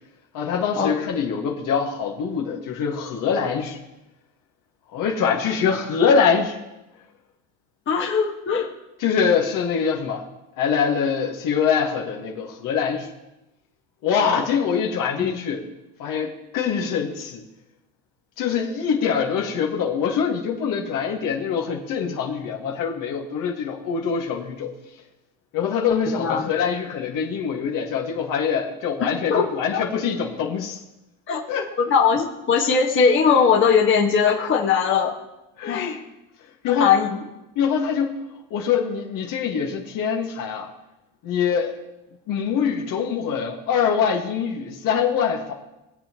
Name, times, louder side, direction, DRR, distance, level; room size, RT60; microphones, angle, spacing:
voice 1, 0.3-3.8 4.9-6.6 9.0-10.2 10.6-13.1 14.0-15.6 16.0-17.4 18.4-24.7 25.5-30.8 31.5-31.7 35.6-36.0 36.6-36.9 37.6-38.2 38.5-40.7 41.2-41.8 42.3-45.5, left 6 dB, 55° left, 1 dB, 1.8 m, -24 dB
voice 2, 7.9-8.7 15.2-15.3 26.2-26.5 29.3-29.8 31.3-31.4 31.8-35.1 35.7-36.0 36.8-37.1, left 6 dB, 30° left, -1 dB, 1.6 m, -20 dB
23.0 x 7.9 x 3.0 m, 0.98 s
supercardioid pair, 120°, 39 cm